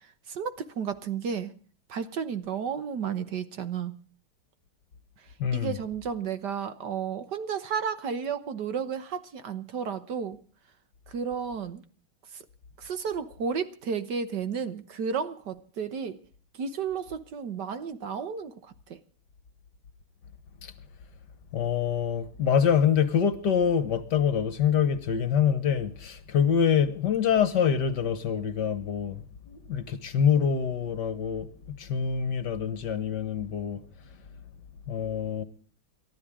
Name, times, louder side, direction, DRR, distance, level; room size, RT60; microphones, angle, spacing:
voice 1, 0.3-1.5 1.9-4.0 5.5-10.4 11.1-11.8 12.8-16.2 16.6-18.5 18.9-19.0, right 6 dB, 60° right, 1.6 m, -32 dB
voice 2, 5.4-5.8 20.6-20.7 21.5-33.8 34.9-35.4, left 7 dB, 60° left, 1.7 m, -25 dB
29.0 x 13.0 x 3.7 m
omnidirectional pair, 2.2 m